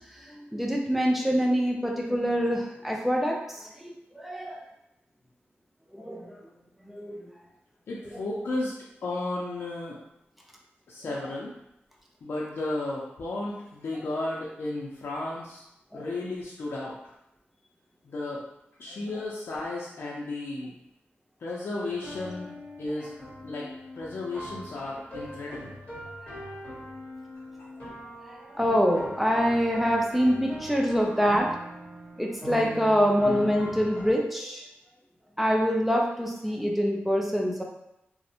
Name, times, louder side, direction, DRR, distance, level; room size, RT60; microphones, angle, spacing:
voice 1, 0.3-4.7 5.9-6.3 6.8-7.3 15.9-16.1 26.2-26.4 28.3-31.5 32.2-34.7 35.4-37.6, equal, 5° right, -1 dB, 0.4 m, -25 dB
voice 2, 7.9-8.7 9.0-10.0 10.9-11.5 12.2-15.6 15.9-16.9 18.0-18.4 18.8-20.7 21.4-23.1 23.4-23.7 24.0-25.8 27.6-27.7, left 2 dB, 65° left, -5 dB, 0.4 m, -33 dB
sound 1, 21.9-34.1, equal, 35° left, 1.3 m, -41 dB
2.5 x 2.1 x 2.7 m, 0.86 s
wide cardioid pair, 105°, 4 cm